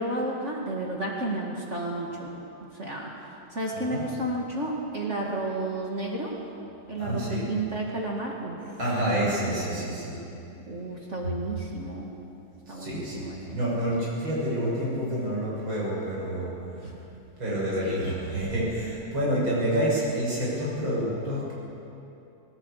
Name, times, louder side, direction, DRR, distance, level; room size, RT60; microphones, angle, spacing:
voice 1, 0.0-2.3 2.7-3.1 3.5-6.3 6.9-8.8 10.7-12.1 12.7-13.6 16.7-17.0 17.8-18.0, right 1 dB, 35° right, -2 dB, 2.4 m, -32 dB
voice 2, 7.0-7.4 8.8-10.2 12.7-16.5 17.4-21.5, equal, 65° right, -6 dB, 7.5 m, -28 dB
19.5 x 19.5 x 8.5 m, 2.8 s
omnidirectional pair, 2.3 m